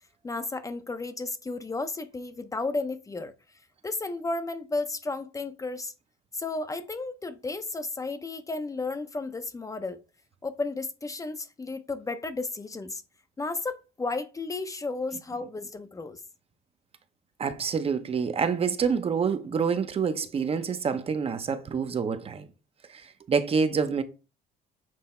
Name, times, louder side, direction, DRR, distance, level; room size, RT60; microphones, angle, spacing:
voice 1, 0.2-3.3 3.8-5.9 6.3-10.0 10.4-13.0 13.4-16.2, left 3 dB, 20° left, 0.6 m, -33 dB
voice 2, 17.4-22.5 22.9-24.0, right 6 dB, 35° right, 0.7 m, -27 dB
7.6 x 3.3 x 4.3 m
cardioid pair, 110°, 17 cm